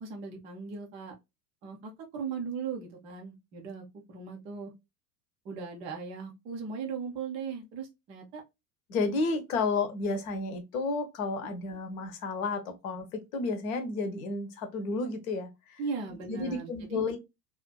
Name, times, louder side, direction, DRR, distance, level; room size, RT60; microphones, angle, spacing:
voice 1, 0.0-1.1 1.6-4.7 5.4-8.4 15.8-17.0, right 5 dB, 15° right, 0.3 m, -38 dB
voice 2, 8.9-15.8 16.3-17.2, left 3 dB, 55° left, 0.8 m, -32 dB
2.4 x 2.4 x 2.2 m
figure-of-eight pair, 80°, 49 cm